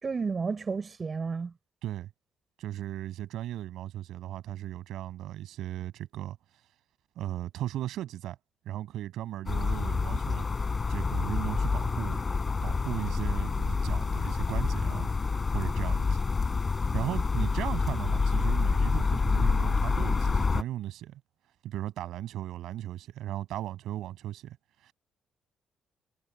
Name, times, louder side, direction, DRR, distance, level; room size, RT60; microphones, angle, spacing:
voice 1, 0.0-1.5, right 5 dB, 35° right, 5.3 m, -31 dB
voice 2, 2.6-6.4 7.1-8.4 8.6-10.4 10.9-12.2 12.6-15.1 15.5-16.2 16.9-21.2 21.6-24.6 24.8-24.9, right 13 dB, 80° right, 6.7 m, -36 dB
sound 1, 9.5-20.6, left 4 dB, 30° left, 5.7 m, -27 dB
cardioid pair, 90°, 0 cm